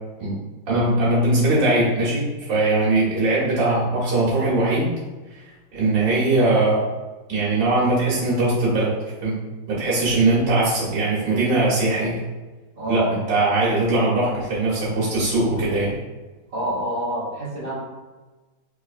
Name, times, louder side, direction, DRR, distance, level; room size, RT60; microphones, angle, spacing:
voice 1, 0.7-4.9 5.3-5.4 5.7-6.8 7.3-8.9 9.2-9.4 9.7-12.2 12.9-15.9, right 2 dB, 60° right, -8 dB, 1.8 m, -20 dB
voice 2, 12.7-13.1 16.5-17.8, right 1 dB, 40° right, -7 dB, 0.8 m, -27 dB
3.4 x 3.3 x 2.4 m, 1.2 s
omnidirectional pair, 2.3 m